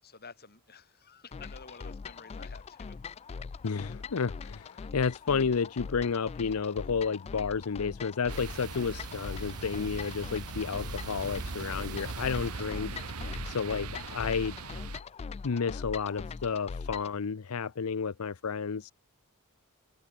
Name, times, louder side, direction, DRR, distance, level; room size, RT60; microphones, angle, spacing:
voice 1, 0.0-3.0, left 4 dB, 45° left, 5.8 m, -51 dB
sound 1, 1.3-17.2, left 5 dB, 30° left, 0.3 m, -42 dB
voice 2, 3.6-14.6 15.4-18.9, left 5 dB, 80° left, 0.6 m, -31 dB
sound 2, 8.3-12.7, right 6 dB, 20° right, 3.6 m, -53 dB
sound 3, 8.3-15.0, right 4 dB, 80° right, 0.9 m, -40 dB
head